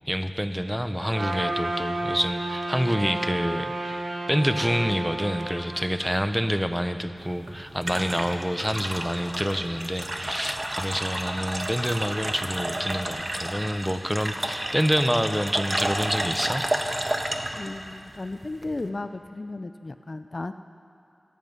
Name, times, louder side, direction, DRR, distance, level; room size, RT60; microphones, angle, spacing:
voice 1, 0.1-16.6, equal, 5° right, 8 dB, 1.0 m, -27 dB
Trumpet, 1.1-5.6, right 2 dB, 90° right, 2.3 m, -31 dB
sound 1, 7.2-18.9, right 1 dB, 35° right, 1.5 m, -31 dB
voice 2, 17.6-20.5, left 2 dB, 50° left, 10 dB, 0.5 m, -34 dB
24.0 x 10.0 x 5.5 m, 2.6 s
cardioid pair, 40°, 0 cm